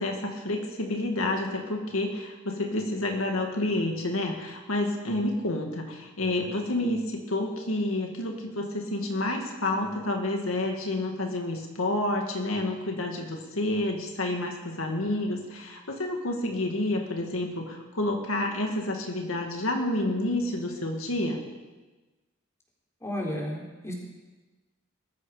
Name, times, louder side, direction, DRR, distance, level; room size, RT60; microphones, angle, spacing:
voice 1, 0.0-21.4, left 1 dB, 80° left, 2 dB, 2.1 m, -29 dB
voice 2, 23.0-23.9, equal, 15° left, -2 dB, 3.8 m, -33 dB
20.5 x 14.0 x 5.1 m, 1.2 s
head